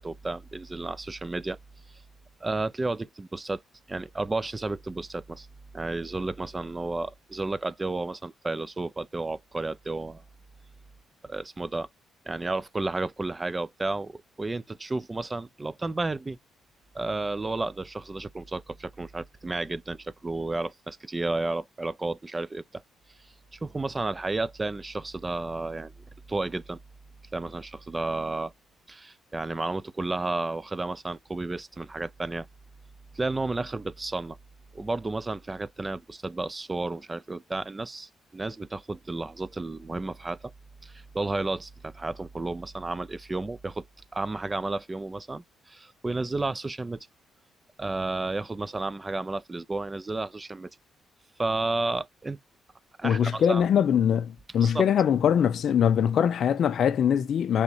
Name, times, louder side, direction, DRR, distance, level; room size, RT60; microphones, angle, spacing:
voice 1, 0.0-1.6 1.9-2.0 2.4-3.6 3.9-5.5 5.7-10.2 11.2-11.9 12.3-16.4 16.9-22.8 23.2-25.9 26.3-26.8 27.3-28.5 28.9-32.5 33.1-34.4 34.7-40.5 40.8-43.8 44.1-47.1 47.8-50.7 51.4-52.4 53.0-53.7 54.6-54.8, right 2 dB, 20° right, 0.4 m, -32 dB
voice 2, 53.0-57.6, left 8 dB, 65° left, 0.4 m, -22 dB
3.5 x 2.8 x 4.1 m
cardioid pair, 90°, 0 cm